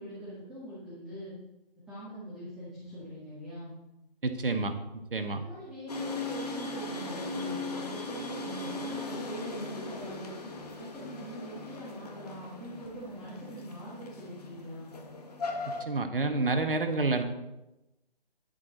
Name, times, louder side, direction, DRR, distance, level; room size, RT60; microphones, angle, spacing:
voice 1, 0.0-1.3 1.9-3.8 5.4-10.3 10.7-14.9, right 1 dB, ahead, -14 dB, 1.5 m, -43 dB
voice 2, 4.2-4.7 5.1-5.4 15.8-17.2, right 3 dB, 65° right, 6 dB, 1.3 m, -28 dB
sound 1, 5.9-15.8, left 2 dB, 40° left, 1.6 m, -38 dB
10.5 x 7.8 x 4.1 m, 0.94 s
figure-of-eight pair, 150°, 29 cm